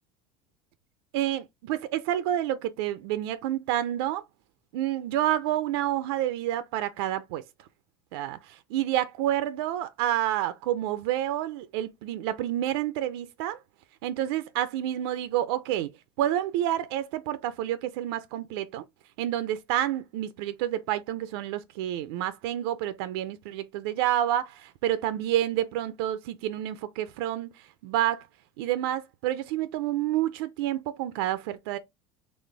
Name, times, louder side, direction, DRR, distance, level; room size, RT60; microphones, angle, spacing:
voice 1, 1.1-4.2 4.7-7.4 8.1-13.6 14.0-15.9 16.2-18.8 19.2-27.5 27.8-28.3 28.6-31.8, right 12 dB, 75° right, 0.5 m, -29 dB
4.2 x 3.2 x 3.3 m
cardioid pair, 170°, 13 cm